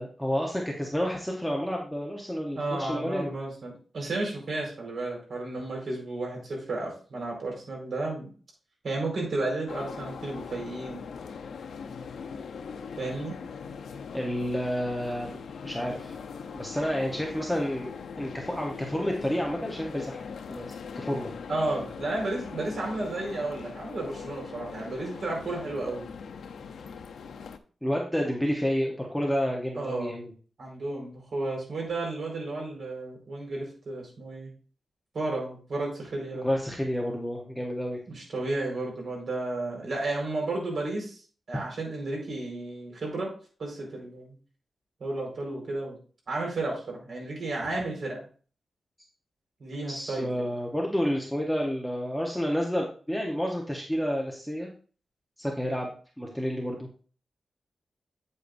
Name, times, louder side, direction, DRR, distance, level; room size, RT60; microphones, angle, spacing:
voice 1, 0.0-3.3 14.1-16.2 16.5-17.9 18.2-20.2 20.5-20.7 20.9-21.3 27.8-30.3 36.4-38.0 49.9-54.7 55.4-56.9, equal, ahead, -1 dB, 1.1 m, -30 dB
voice 2, 2.5-8.3 8.8-11.0 13.0-13.4 21.5-26.1 29.8-30.2 30.6-34.5 35.1-36.5 38.1-41.2 41.5-43.3 43.6-44.4 45.0-46.0 46.3-48.2 49.6-50.3, right 2 dB, 55° right, -1 dB, 4.7 m, -33 dB
sound 1, 9.7-27.6, left 6 dB, 85° left, 0.7 m, -41 dB
8.6 x 8.2 x 2.6 m, 0.40 s
wide cardioid pair, 160°, 0 cm